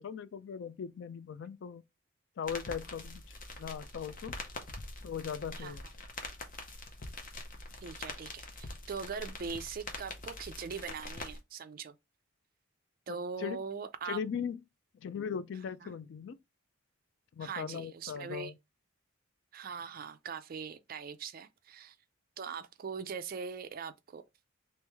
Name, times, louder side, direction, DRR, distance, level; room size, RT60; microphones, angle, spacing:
voice 1, 0.0-1.8 2.4-3.2 3.6-4.4 5.0-5.8 13.1-13.6 14.0-14.6 15.0-16.4 17.3-18.5, left 7 dB, 60° left, 0.3 m, -39 dB
sound 1, 2.4-11.4, left 2 dB, 40° left, 0.7 m, -44 dB
voice 2, 7.8-11.9 13.1-14.2 15.8-15.9 17.4-18.5 19.5-22.0 22.4-24.2, right 5 dB, 45° right, 0.4 m, -41 dB
3.1 x 3.0 x 3.4 m
head